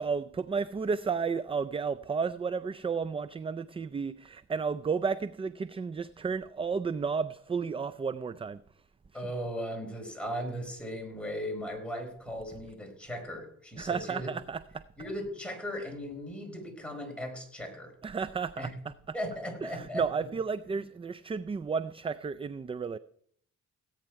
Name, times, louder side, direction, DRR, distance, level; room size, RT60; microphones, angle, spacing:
voice 1, 0.0-8.6 13.8-14.8 18.0-18.9 19.6-23.0, right 5 dB, 20° right, 0.4 m, -32 dB
voice 2, 9.1-14.3 15.0-18.0 18.6-18.7 19.1-20.0, equal, 5° left, 4.6 m, -37 dB
17.5 x 8.9 x 4.6 m
cardioid pair, 90°, 30 cm